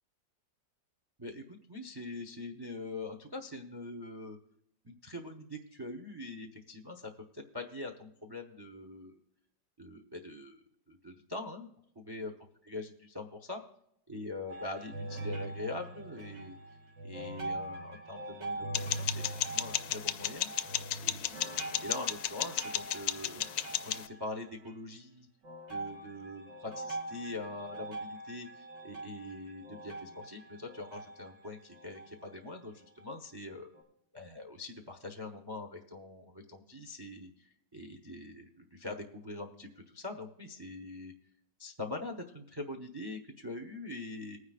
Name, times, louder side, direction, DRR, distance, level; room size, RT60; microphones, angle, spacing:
voice 1, 1.2-4.4 4.8-9.1 9.8-11.7 11.9-12.3 12.7-13.6 14.1-16.6 17.0-19.1 19.4-20.5 21.0-23.5 23.8-25.3 25.7-33.7 34.1-41.1 41.6-44.4, left 2 dB, 25° right, 4 dB, 0.5 m, -43 dB
sound 1, 14.5-24.7 25.4-32.4 33.0-33.1 33.7-33.8, right 2 dB, 70° right, 2.5 m, -43 dB
sound 2, 18.7-24.1, left 12 dB, 70° left, 1.0 m, -34 dB
20.0 x 9.7 x 2.4 m, 0.77 s
omnidirectional pair, 2.0 m